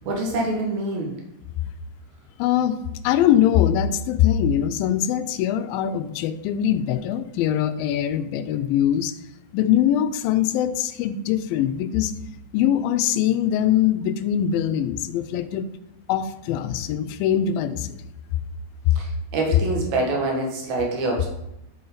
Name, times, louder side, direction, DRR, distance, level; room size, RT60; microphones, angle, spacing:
voice 1, 0.0-1.1 19.0-21.3, right 2 dB, 60° right, -1 dB, 2.7 m, -25 dB
voice 2, 2.4-2.8 3.0-9.1 9.5-12.1 12.5-15.7 16.1-18.1, left 10 dB, 90° left, 11 dB, 2.4 m, -22 dB
10.5 x 5.5 x 3.9 m, 0.85 s
omnidirectional pair, 4.0 m